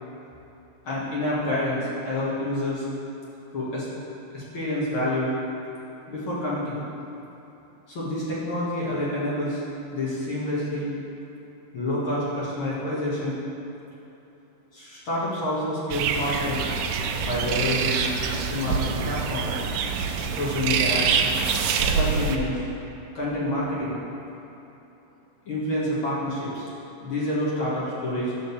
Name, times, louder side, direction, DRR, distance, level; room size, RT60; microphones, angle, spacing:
voice 1, 0.8-2.9 3.5-3.9 4.3-5.3 6.1-6.9 7.9-9.6 9.9-10.9 11.7-13.4 14.7-16.7 17.2-19.5 20.3-21.2 21.8-22.6 23.1-24.0 25.5-26.7 27.0-28.3, left 1 dB, 50° left, -8 dB, 1.8 m, -28 dB
sound 1, 15.9-22.4, right 6 dB, 80° right, 1.9 m, -25 dB
11.5 x 3.9 x 7.0 m, 3.0 s
omnidirectional pair, 4.1 m